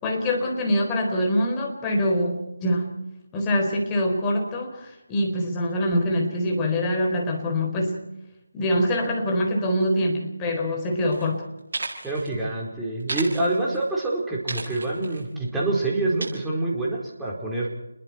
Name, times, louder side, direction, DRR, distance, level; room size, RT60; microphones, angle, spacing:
voice 1, 0.0-2.9 3.3-8.0 8.5-11.5, left 1 dB, 15° left, 1 dB, 4.0 m, -24 dB
sound 1, 11.1-11.3 11.6-12.3 13.0-13.8 14.5-15.2 16.2-16.3, right 3 dB, 55° right, 7.3 m, -33 dB
voice 2, 12.0-17.7, right 2 dB, 5° right, -5 dB, 4.5 m, -26 dB
30.0 x 21.5 x 4.7 m, 0.96 s
figure-of-eight pair, 160°, 0 cm